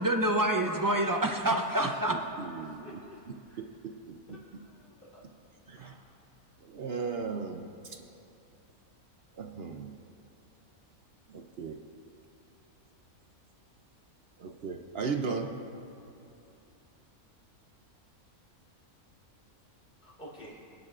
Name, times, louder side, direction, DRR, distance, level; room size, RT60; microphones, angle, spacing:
voice 1, 0.0-2.1, right 1 dB, 35° right, 3 dB, 0.3 m, -27 dB
voice 2, 1.8-3.0 3.6-4.4 5.7-5.9 6.6-8.0 9.3-9.9 11.3-11.8 14.4-15.6, right 5 dB, 60° right, 4 dB, 0.7 m, -37 dB
voice 3, 2.6-3.2 3.5-3.6 4.3-5.2 5.8-6.0 20.0-20.6, left 1 dB, 35° left, -6 dB, 3.5 m, -51 dB
26.0 x 9.7 x 2.4 m, 2.7 s
omnidirectional pair, 1.5 m